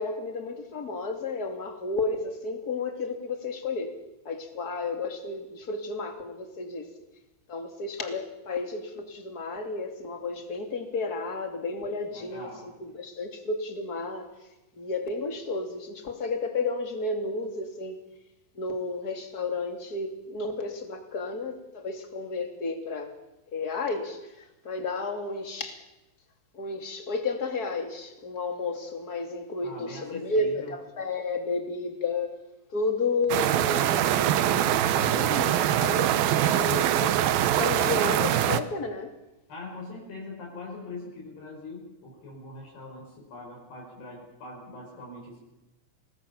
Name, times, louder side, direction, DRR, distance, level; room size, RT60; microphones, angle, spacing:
voice 1, 0.0-4.0 4.2-6.9 7.5-12.5 12.8-14.3 14.8-18.0 18.5-23.1 23.5-25.8 26.5-32.3 32.7-39.1, left 3 dB, 25° left, 5 dB, 2.6 m, -32 dB
voice 2, 12.1-12.7 29.6-30.8 39.5-45.4, left 2 dB, 65° left, -1 dB, 7.5 m, -42 dB
sound 1, 33.3-38.6, right 11 dB, 70° right, 2.5 m, -23 dB
29.5 x 20.0 x 7.3 m, 0.98 s
omnidirectional pair, 5.0 m